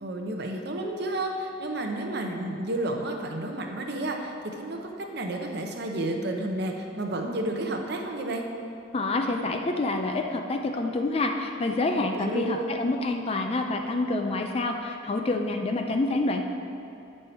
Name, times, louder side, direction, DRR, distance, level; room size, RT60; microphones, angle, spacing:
voice 1, 0.0-8.4 12.0-12.7, right 1 dB, 55° right, 3 dB, 0.7 m, -31 dB
voice 2, 8.9-16.4, left 2 dB, 30° left, 4 dB, 0.4 m, -27 dB
8.4 x 5.4 x 4.4 m, 2.9 s
head